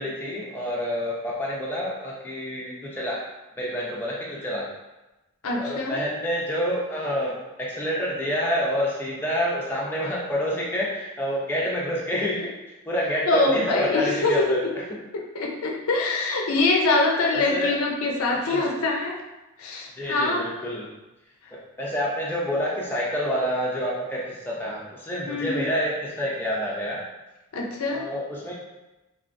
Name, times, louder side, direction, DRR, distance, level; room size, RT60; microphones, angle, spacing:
voice 1, 0.0-3.2 3.6-4.7 5.6-12.5 12.8-14.8 15.2-15.3 17.3-17.7 18.5-18.6 20.0-20.9 21.5-27.0 27.9-28.5, equal, 10° left, -5 dB, 0.4 m, -28 dB
voice 2, 5.4-6.0 13.3-14.4 15.1-19.2 19.6-20.5 25.3-25.7 27.5-28.0, left 2 dB, 70° left, 1 dB, 0.5 m, -24 dB
3.3 x 2.4 x 2.5 m, 1.0 s
head